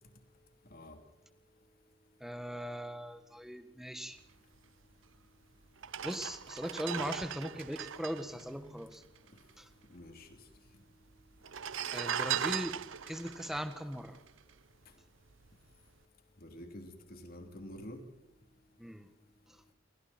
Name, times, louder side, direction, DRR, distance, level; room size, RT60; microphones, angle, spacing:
voice 1, 2.2-4.2 6.0-9.0 9.6-9.7 11.9-12.8 13.1-14.2 18.8-19.1 19.5-19.7, equal, ahead, 8 dB, 1.6 m, -39 dB
sound 1, 5.1-5.2 5.8-9.5 9.7-9.8 10.0-10.7 11.4-14.8 15.3-15.5, right 8 dB, 80° right, 0.8 m, -38 dB
voice 2, 8.3-8.7 9.9-10.3 16.4-18.0, left 1 dB, 50° left, 5 dB, 3.2 m, -48 dB
28.5 x 24.0 x 4.4 m, 0.96 s
head